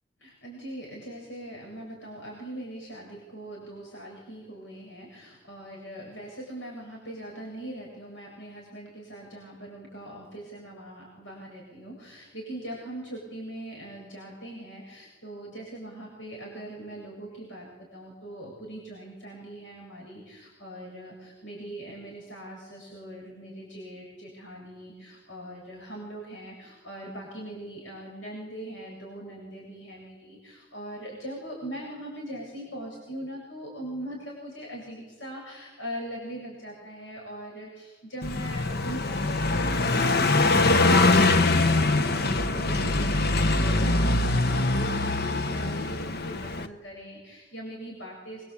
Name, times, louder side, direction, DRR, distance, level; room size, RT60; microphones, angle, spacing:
voice 1, 0.2-48.5, right 1 dB, 80° left, -2 dB, 8.0 m, -41 dB
Car passing by, 38.2-46.7, left 2 dB, 55° left, 1.2 m, -23 dB
27.5 x 25.0 x 8.6 m, 1.2 s
head